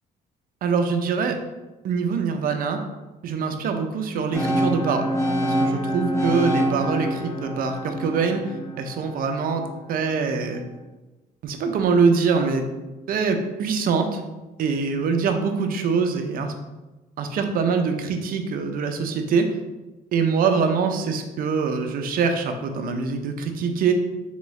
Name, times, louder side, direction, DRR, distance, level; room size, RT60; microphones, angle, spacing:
voice 1, 0.6-1.4 1.8-2.8 3.2-5.1 5.4-8.4 8.8-9.6 9.9-10.6 11.4-12.6 13.1-14.2 14.6-16.5 17.2-19.5 20.1-23.9, right 5 dB, 55° right, 5 dB, 0.6 m, -24 dB
sound 1, 4.3-10.3, equal, 15° left, 1.0 m, -26 dB
3.8 x 3.5 x 3.1 m, 1.1 s
cardioid pair, 110°, 17 cm